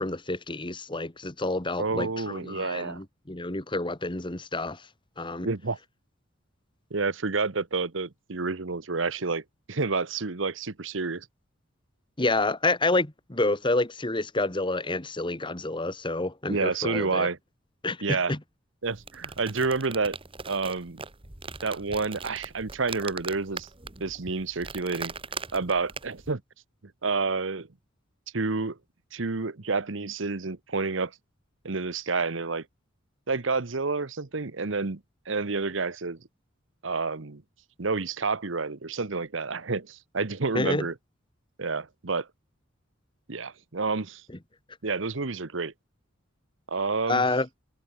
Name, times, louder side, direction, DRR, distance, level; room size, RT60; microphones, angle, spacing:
voice 1, 0.0-4.8 5.2-5.5 12.2-17.3 17.8-18.4 40.6-40.9 47.1-47.5, left 2 dB, 25° left, 1.8 m, -28 dB
voice 2, 1.8-3.0 5.4-5.8 6.9-11.3 16.5-17.4 18.0-18.3 18.8-20.2 20.5-21.0 21.6-23.7 24.0-25.1 25.5-26.4 27.0-27.7 28.3-28.8 29.1-31.1 31.6-32.6 33.3-35.0 35.3-36.2 36.8-37.4 37.8-40.9 41.6-42.3 43.3-44.2 44.8-45.7 46.7-47.2, right 4 dB, 70° right, 1.1 m, -29 dB
sound 1, 18.8-26.3, right 5 dB, 25° right, 1.8 m, -40 dB
head